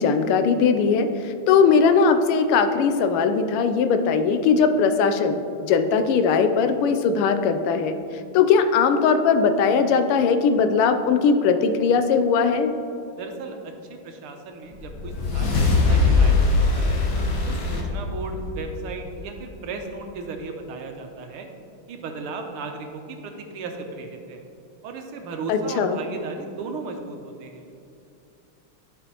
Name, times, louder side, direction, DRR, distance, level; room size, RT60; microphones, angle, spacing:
voice 1, 0.0-7.9 8.3-12.7 25.5-26.0, left 5 dB, 85° left, 8 dB, 1.5 m, -19 dB
voice 2, 13.1-17.0 17.4-21.5 21.9-24.4 24.8-27.6, right 3 dB, 85° right, 4 dB, 1.7 m, -36 dB
sound 1, 14.8-19.3, left 3 dB, 55° left, 1.0 m, -21 dB
11.5 x 5.0 x 2.9 m, 2.6 s
omnidirectional pair, 2.4 m